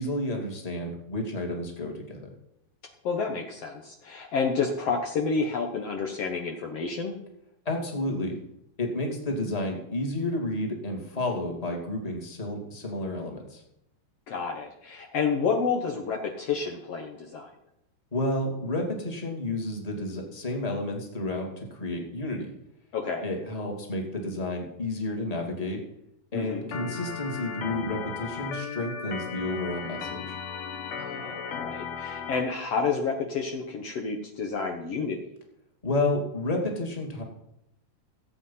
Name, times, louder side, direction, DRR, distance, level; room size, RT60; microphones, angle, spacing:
voice 1, 0.0-2.3 7.6-8.3 8.8-13.6 18.1-22.5 23.2-25.8 26.3-30.4 35.8-37.2, left 1 dB, 15° left, 1 dB, 1.5 m, -31 dB
voice 2, 3.0-7.1 14.3-17.5 22.9-23.3 26.3-26.7 30.9-35.2, left 5 dB, 90° left, 2 dB, 1.3 m, -30 dB
Organ, 26.7-32.4, left 6 dB, 60° left, 2.6 m, -36 dB
17.0 x 8.4 x 5.7 m, 0.79 s
omnidirectional pair, 4.8 m